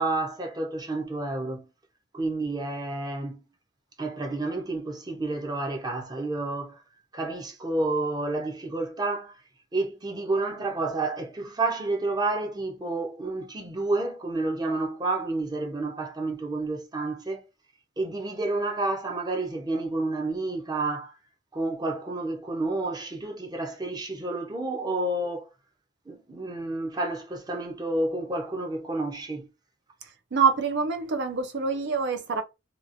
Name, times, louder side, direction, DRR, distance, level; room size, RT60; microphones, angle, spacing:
voice 1, 0.0-1.7 2.1-3.4 4.0-6.8 7.1-9.3 9.7-17.4 18.0-21.1 21.5-25.5 26.1-29.5, right 2 dB, 20° right, 0.7 m, -30 dB
voice 2, 30.3-32.4, right 5 dB, 60° right, 0.6 m, -25 dB
2.9 x 2.3 x 2.5 m
head